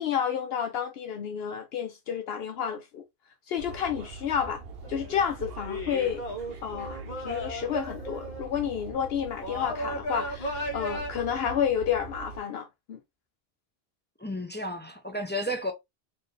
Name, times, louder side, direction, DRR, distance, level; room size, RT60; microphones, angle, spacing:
voice 1, 0.0-3.0 3.5-4.6 4.9-6.2 6.6-13.0, left 8 dB, 75° left, 0.8 m, -30 dB
sound 1, 3.6-12.4, right 4 dB, 70° right, 0.9 m, -43 dB
sound 2, 4.7-5.2 5.6-8.4 9.4-11.1, equal, 50° left, 1.2 m, -35 dB
voice 2, 14.2-15.7, equal, 15° left, 0.4 m, -32 dB
4.3 x 2.6 x 3.1 m
omnidirectional pair, 1.1 m